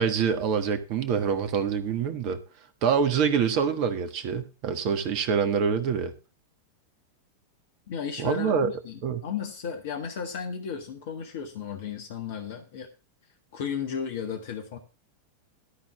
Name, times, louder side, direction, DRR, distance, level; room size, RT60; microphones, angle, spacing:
voice 1, 0.0-2.4 2.8-6.1 8.2-8.7 9.0-9.2, right 6 dB, 45° right, 1.5 m, -25 dB
voice 2, 7.9-12.9 13.5-14.8, left 7 dB, 55° left, 1.4 m, -34 dB
13.5 x 4.5 x 7.2 m
figure-of-eight pair, 90°, 0 cm